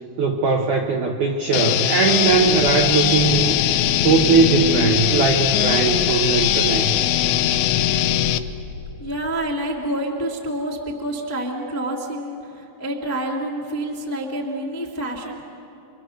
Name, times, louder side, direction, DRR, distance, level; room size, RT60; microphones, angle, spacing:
voice 1, 0.2-3.6 4.0-6.9, right 5 dB, 85° right, 2 dB, 1.7 m, -19 dB
sound 1, 1.5-8.4, left 13 dB, 80° left, 2.6 m, -20 dB
sound 2, 2.2-8.8, right 1 dB, 60° right, 9.4 m, -35 dB
voice 2, 9.0-15.4, right 1 dB, 20° left, -2 dB, 0.3 m, -28 dB
29.0 x 24.5 x 6.5 m, 2.8 s
omnidirectional pair, 5.6 m